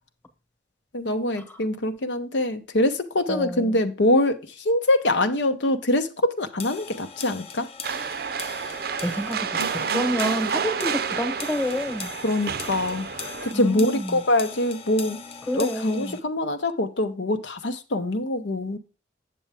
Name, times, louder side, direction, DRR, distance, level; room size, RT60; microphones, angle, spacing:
voice 1, 0.9-7.7 12.2-15.2 15.5-18.8, left 1 dB, 80° left, 0.8 m, -24 dB
voice 2, 3.3-3.8 9.0-9.6 9.9-12.1 13.5-14.2 15.5-16.2, equal, 10° left, 1.1 m, -28 dB
sound 1, 6.6-16.2, left 5 dB, 35° left, 0.7 m, -40 dB
sound 2, 7.8-13.5, right 6 dB, 55° right, 0.5 m, -29 dB
8.5 x 6.9 x 3.4 m
head